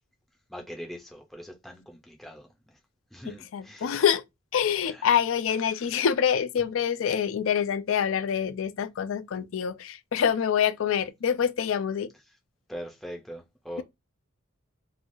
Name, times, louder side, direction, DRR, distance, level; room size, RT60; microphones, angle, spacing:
voice 1, 0.5-2.8 3.1-3.9 4.9-5.1 12.7-13.8, equal, ahead, 0.5 m, -41 dB
voice 2, 3.5-4.2 4.5-12.1, left 8 dB, 70° left, 0.4 m, -26 dB
3.1 x 2.3 x 2.5 m
head